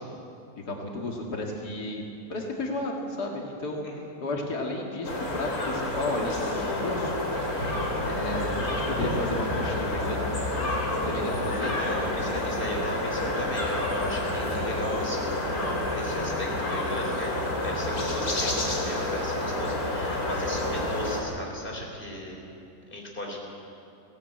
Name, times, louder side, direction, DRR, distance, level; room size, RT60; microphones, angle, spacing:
voice 1, 0.7-2.0 2.3-3.8 4.2-7.1 8.0-10.3 11.0-11.7, left 2 dB, 90° left, 0 dB, 2.7 m, -32 dB
sound 1, 5.0-21.2, left 1 dB, 65° left, 3.9 m, -29 dB
voice 2, 11.6-15.6 15.9-22.5 22.9-23.4, left 1 dB, 35° left, 0 dB, 3.9 m, -36 dB
20.5 x 17.0 x 8.8 m, 2.6 s
omnidirectional pair, 1.7 m